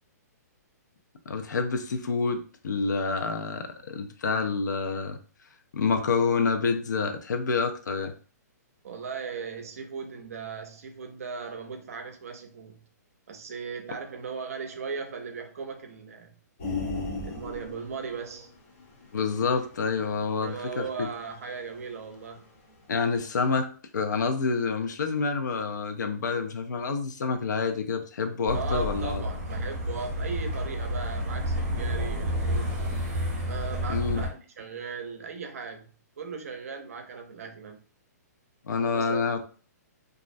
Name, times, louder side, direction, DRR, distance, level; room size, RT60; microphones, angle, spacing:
voice 1, 1.3-5.2 5.7-8.1 19.1-21.1 22.9-23.7 23.9-29.2 33.9-34.2 38.7-39.4, left 4 dB, 90° left, 0.5 m, -28 dB
voice 2, 8.8-12.8 13.3-16.3 17.2-18.5 20.4-22.5 28.5-32.9 33.5-35.9 36.2-37.8 38.8-39.2, right 5 dB, 55° right, 0.5 m, -37 dB
sound 1, 16.6-22.4 22.8-22.9, left 3 dB, 40° left, 0.7 m, -37 dB
sound 2, 28.5-34.3, equal, 20° right, 0.7 m, -30 dB
2.4 x 2.0 x 2.5 m
hypercardioid pair, 175°, 9 cm